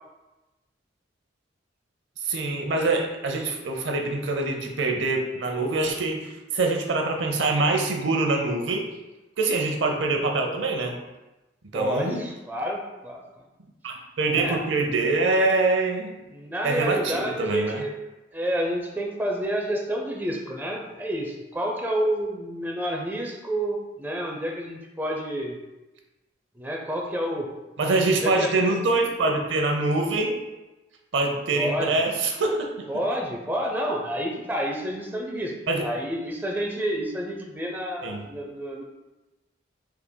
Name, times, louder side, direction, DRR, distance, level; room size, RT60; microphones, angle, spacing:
voice 1, 2.2-8.9 9.4-10.9 11.7-12.2 13.8-16.1 16.6-17.8 27.8-30.3 31.1-32.9 35.7-35.8 38.0-38.3, right 3 dB, 85° right, 3 dB, 0.7 m, -24 dB
voice 2, 11.7-13.2 14.4-14.6 16.3-17.9 18.3-25.6 26.6-27.5 28.1-28.5 31.5-31.9 32.9-35.5 35.8-38.8, equal, 10° right, 0 dB, 0.5 m, -29 dB
5.7 x 3.7 x 2.2 m, 1.1 s
head